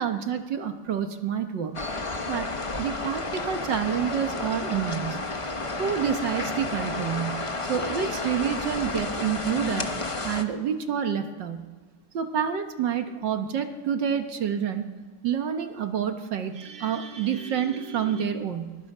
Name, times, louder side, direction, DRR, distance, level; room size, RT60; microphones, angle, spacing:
voice 1, 0.0-1.8 2.2-2.5 2.8-5.2 5.8-9.9 10.2-11.7 12.1-14.9 15.2-18.8, right 8 dB, 60° right, 7 dB, 1.7 m, -28 dB
sound 1, 1.7-10.4, left 3 dB, 25° left, 0.7 m, -31 dB
23.0 x 21.0 x 5.5 m, 1.4 s
omnidirectional pair, 2.3 m